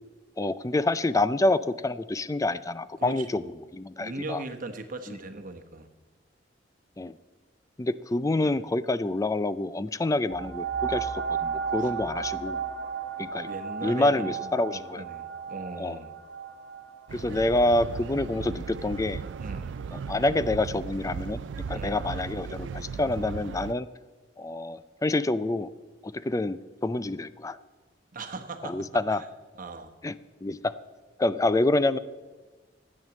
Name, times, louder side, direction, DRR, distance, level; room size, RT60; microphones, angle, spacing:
voice 1, 0.4-3.4 3.7-4.4 5.1-5.2 7.0-7.1 7.8-12.6 13.2-13.5 13.8-15.0 15.8-16.0 17.1-19.2 19.9-21.4 21.7-23.9 24.4-25.7 26.0-27.6 28.6-29.2 30.0-30.1 30.4-30.7 31.2-32.0, left 2 dB, 20° left, 15 dB, 0.4 m, -27 dB
voice 2, 3.0-3.5 4.0-5.9 8.4-8.5 11.8-11.9 13.5-16.1 19.4-19.7 21.7-22.0 28.1-28.9 29.6-29.9, right 3 dB, 45° right, 6 dB, 1.2 m, -39 dB
sound 1, 10.3-19.5 20.2-20.3, right 7 dB, 85° right, 1.2 m, -35 dB
sound 2, 17.1-23.7, right 6 dB, 70° right, 0.4 m, -37 dB
14.0 x 9.1 x 7.3 m, 1.3 s
head